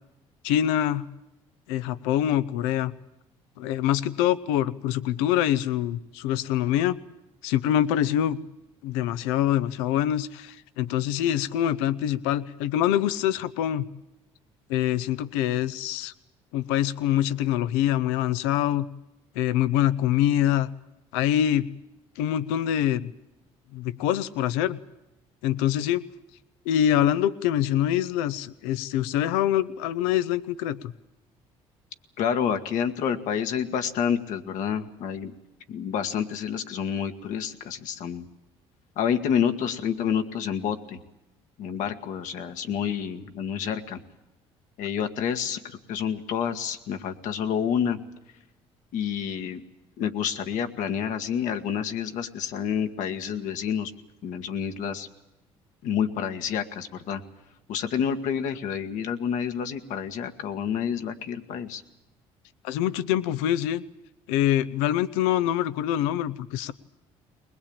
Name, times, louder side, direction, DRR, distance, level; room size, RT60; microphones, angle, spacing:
voice 1, 0.4-1.0 1.7-2.9 3.6-7.0 7.4-8.4 8.8-13.9 14.7-16.1 16.5-18.9 19.3-20.7 21.1-21.7 22.2-23.1 23.7-24.8 25.4-26.0 26.7-30.9 62.6-63.8 64.3-66.7, left 11 dB, 90° left, 16 dB, 0.8 m, -25 dB
voice 2, 32.2-35.3 35.7-38.3 39.0-41.0 41.6-44.0 44.8-48.0 48.9-49.6 50.0-53.9 54.2-55.1 55.8-57.2 57.7-61.8, left 8 dB, 75° left, 7 dB, 1.8 m, -28 dB
21.0 x 21.0 x 8.8 m, 0.96 s
supercardioid pair, 75°, 13 cm